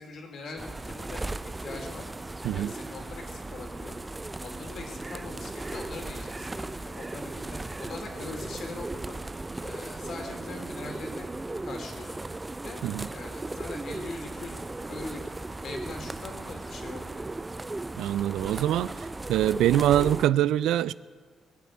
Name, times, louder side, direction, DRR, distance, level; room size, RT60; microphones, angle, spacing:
voice 1, 0.0-2.0 2.5-4.0 4.4-9.2 9.6-11.3 11.6-12.2 12.6-12.8 13.1-14.6 14.9-15.2 15.6-17.4, left 3 dB, 60° left, 3.1 m, -42 dB
sound 1, 0.6-20.3, right 2 dB, 15° right, 0.4 m, -37 dB
voice 2, 18.0-18.9 19.3-20.9, right 12 dB, 85° right, 0.4 m, -24 dB
20.5 x 7.6 x 8.5 m
cardioid pair, 85°, 0 cm